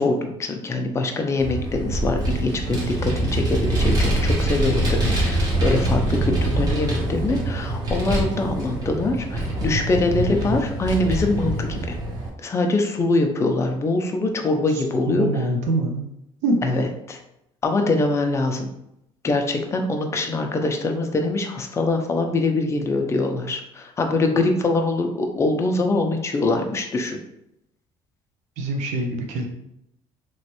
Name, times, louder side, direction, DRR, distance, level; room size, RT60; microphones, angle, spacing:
voice 1, 0.0-12.0 12.4-15.3 16.6-17.2 17.6-18.7 19.2-27.2, left 2 dB, 25° left, 4 dB, 0.5 m, -23 dB
Vehicle, 1.4-12.3, right 1 dB, 35° right, 1.1 m, -24 dB
voice 2, 15.1-16.1 16.4-16.6 28.6-29.4, right 2 dB, 90° right, 2 dB, 0.6 m, -24 dB
3.1 x 3.0 x 2.9 m, 0.80 s
cardioid pair, 135°, 12 cm